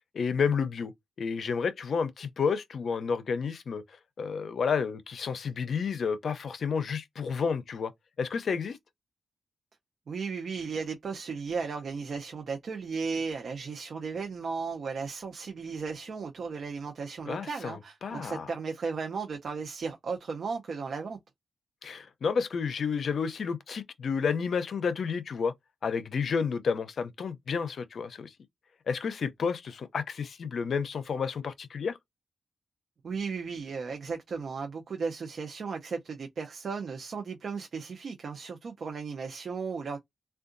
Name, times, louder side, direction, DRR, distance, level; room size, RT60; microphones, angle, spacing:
voice 1, 0.1-0.9 1.2-7.9 8.2-8.8 17.3-18.5 21.8-25.5 25.8-28.3 28.9-32.0, left 6 dB, 60° left, 0.5 m, -31 dB
voice 2, 10.1-21.2 33.0-40.0, right 5 dB, 55° right, 0.5 m, -35 dB
3.6 x 2.2 x 2.5 m
wide cardioid pair, 145°, 0 cm